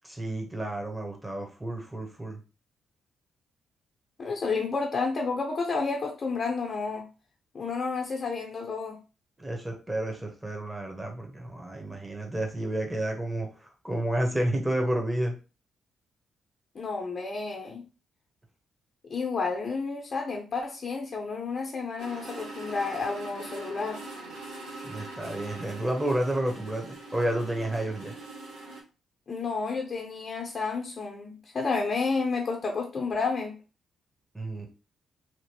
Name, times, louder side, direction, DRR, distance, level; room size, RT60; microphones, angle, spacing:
voice 1, 0.0-2.4 9.4-15.3 24.8-28.1 34.3-34.7, right 1 dB, 10° right, 1 dB, 1.1 m, -31 dB
voice 2, 4.2-7.1 7.5-9.0 16.7-17.8 19.1-24.0 29.3-33.6, left 4 dB, 45° left, 0 dB, 0.7 m, -31 dB
sound 1, 22.0-28.8, right 2 dB, 75° right, 0.9 m, -42 dB
3.0 x 2.9 x 2.9 m, 0.33 s
hypercardioid pair, 40°, 0 cm